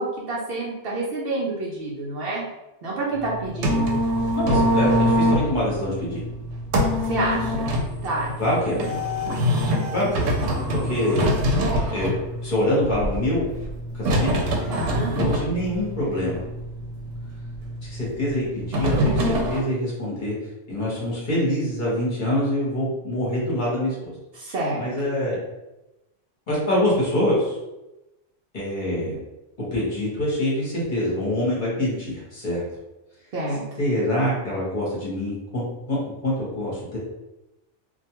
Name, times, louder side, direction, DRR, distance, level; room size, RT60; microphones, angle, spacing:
voice 1, 0.0-2.4 2.8-4.0 7.0-7.7 8.0-8.3 8.7-9.0 14.7-15.1 24.3-24.9 33.3-33.6, right 2 dB, 60° right, -4 dB, 0.7 m, -28 dB
sound 1, 3.1-19.6, equal, 85° right, 0.9 m, -25 dB
voice 2, 4.3-6.2 8.4-8.8 9.9-10.3 10.7-11.3 11.9-12.1 12.4-13.4 13.9-14.3 15.2-16.4 17.8-20.3 20.7-24.1 24.8-25.4 26.5-27.6 28.5-29.1 29.7-32.6 33.8-35.6 35.9-36.0 36.2-37.0, left 1 dB, 45° left, -6 dB, 0.9 m, -25 dB
2.4 x 2.2 x 2.9 m, 0.96 s
omnidirectional pair, 1.3 m